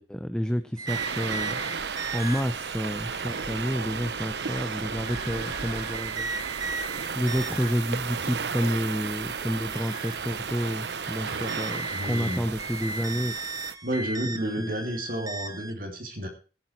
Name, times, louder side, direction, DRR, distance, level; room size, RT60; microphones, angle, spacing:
voice 1, 0.0-1.6 1.8-6.9 7.1-13.3 14.2-14.8, equal, 5° left, 9 dB, 0.6 m, -30 dB
sound 1, 0.8-15.7, right 3 dB, 20° right, 0.9 m, -38 dB
sound 2, 0.9-13.7, right 6 dB, 75° right, 0.8 m, -34 dB
voice 2, 11.9-12.4 13.8-16.3, right 1 dB, 50° right, 2 dB, 3.1 m, -31 dB
17.0 x 8.7 x 4.5 m, 0.35 s
head